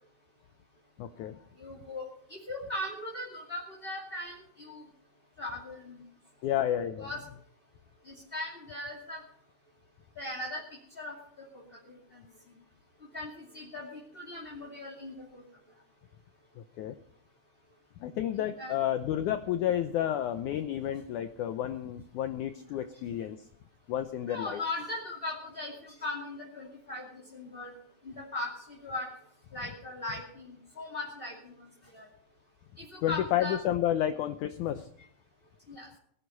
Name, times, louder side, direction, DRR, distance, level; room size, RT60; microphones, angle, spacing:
voice 1, 1.0-1.4 6.4-7.1 16.6-17.0 18.0-23.5 23.9-24.6 33.0-34.9, left 11 dB, 80° left, 10 dB, 1.8 m, -31 dB
voice 2, 1.6-4.8 5.4-6.0 7.0-7.2 8.0-9.2 10.2-10.6 11.0-11.1 11.5-12.2 13.1-15.4 18.6-18.7 24.3-27.7 28.0-29.1 29.5-31.6 31.9-32.1 32.8-33.6 35.7-35.9, left 2 dB, 20° left, -3 dB, 2.1 m, -39 dB
19.5 x 11.0 x 5.4 m, 0.67 s
omnidirectional pair, 4.3 m